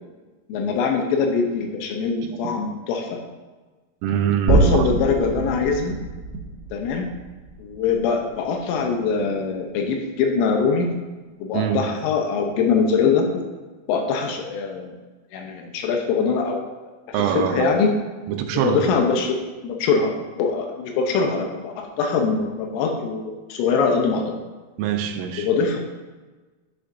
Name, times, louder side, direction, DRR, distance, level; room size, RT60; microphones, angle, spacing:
voice 1, 0.5-3.2 4.5-6.0 6.7-7.1 7.6-10.9 11.4-13.5 13.9-14.9 15.3-16.6 17.1-17.9 18.5-24.3 25.4-25.8, left 5 dB, 80° left, 3 dB, 3.2 m, -23 dB
voice 2, 4.0-4.9 11.5-11.8 17.1-17.7 18.3-18.8 24.8-25.5, right 8 dB, 80° right, 5 dB, 3.2 m, -23 dB
sound 1, 4.5-8.7, right 3 dB, 50° right, 2.0 m, -25 dB
11.5 x 6.7 x 2.6 m, 1.3 s
omnidirectional pair, 5.9 m